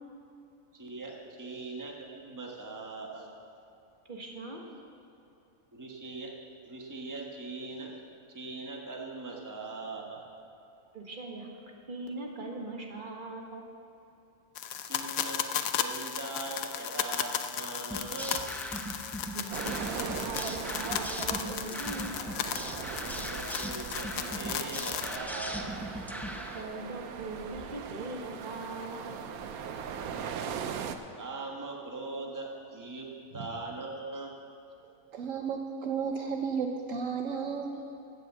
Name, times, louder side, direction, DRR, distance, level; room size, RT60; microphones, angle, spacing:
voice 1, 0.7-3.3 5.7-6.3 6.6-8.0 8.3-10.3 14.8-18.5 23.0-25.9 31.2-33.1 33.3-34.4, right 3 dB, 15° right, -1 dB, 1.2 m, -41 dB
voice 2, 4.1-4.6 10.9-11.5 11.9-13.6 19.3-22.2 26.5-29.2, right 2 dB, 35° right, 0 dB, 1.6 m, -40 dB
sound 1, 14.6-25.2, left 9 dB, 75° left, 1.0 m, -35 dB
sound 2, 17.9-26.6, equal, ahead, 0.5 m, -39 dB
sound 3, 19.5-31.0, right 7 dB, 85° right, 1.2 m, -40 dB
voice 3, 35.1-37.8, right 6 dB, 65° right, 3 dB, 1.1 m, -33 dB
15.5 x 6.5 x 7.5 m, 2.8 s
omnidirectional pair, 1.5 m